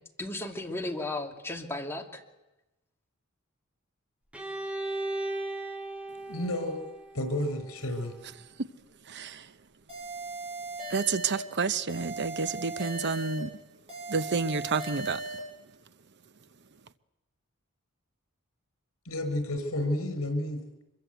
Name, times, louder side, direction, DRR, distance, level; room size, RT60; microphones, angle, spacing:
voice 1, 0.2-2.2, left 2 dB, 10° left, 2.4 m, -35 dB
Bowed string instrument, 4.3-8.2, right 2 dB, 5° right, 2.3 m, -37 dB
voice 2, 6.3-6.8 7.1-8.2 19.0-20.8, left 1 dB, 75° left, 5.4 m, -31 dB
voice 3, 9.1-9.5 10.9-13.5 14.1-15.2, right 5 dB, 55° right, 0.9 m, -29 dB
sound 1, 9.9-11.5 11.9-13.5 13.9-15.5, right 2 dB, 30° right, 7.4 m, -38 dB
25.0 x 23.0 x 8.1 m
head